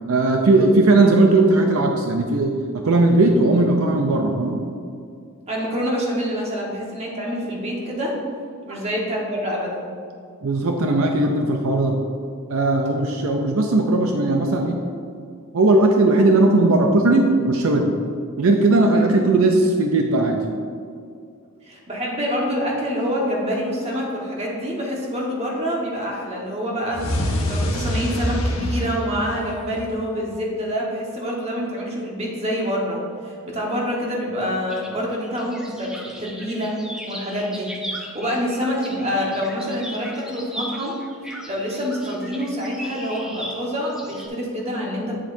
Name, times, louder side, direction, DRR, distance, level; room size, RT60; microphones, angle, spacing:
voice 1, 0.1-4.6 8.7-8.8 10.4-12.0 12.5-14.8 15.5-17.9 18.4-20.4, right 2 dB, 70° right, 2 dB, 0.6 m, -18 dB
voice 2, 5.5-8.1 8.7-9.9 21.6-36.8 37.1-41.0 41.5-45.2, equal, 30° right, -3 dB, 1.3 m, -26 dB
sound 1, 26.9-30.1, left 1 dB, 70° left, 1.1 m, -25 dB
sound 2, 34.4-44.3, equal, 5° right, 0.6 m, -37 dB
8.8 x 7.3 x 2.7 m, 2.4 s
head